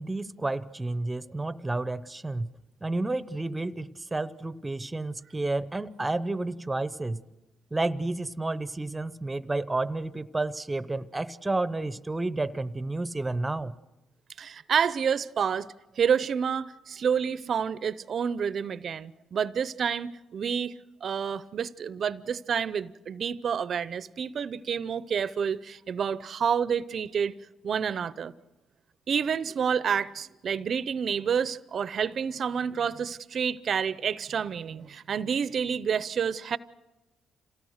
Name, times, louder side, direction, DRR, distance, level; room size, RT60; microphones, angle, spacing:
voice 1, 0.0-2.5 2.8-7.2 7.7-13.7, right 2 dB, 15° right, 0.8 m, -31 dB
voice 2, 14.4-15.7 16.0-20.7 21.0-27.3 27.6-28.3 29.1-36.6, right 7 dB, 55° right, 0.6 m, -29 dB
27.5 x 17.5 x 6.5 m
cardioid pair, 90°, 0 cm